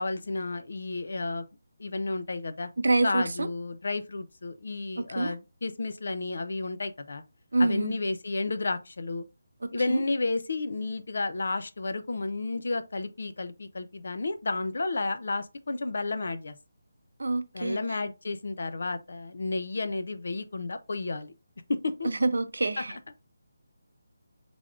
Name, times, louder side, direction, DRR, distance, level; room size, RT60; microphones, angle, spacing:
voice 1, 0.0-1.4 1.8-2.7 3.0-7.2 7.6-9.2 9.7-16.5 17.5-21.3 21.7-22.1 22.8-23.1, left 3 dB, 65° left, 0.5 m, -32 dB
voice 2, 2.8-3.5 5.2-5.3 7.5-8.0 9.9-10.0 17.2-17.8 22.0-23.0, right 2 dB, 75° right, 0.5 m, -26 dB
3.5 x 3.4 x 2.5 m
figure-of-eight pair, 170°, 0 cm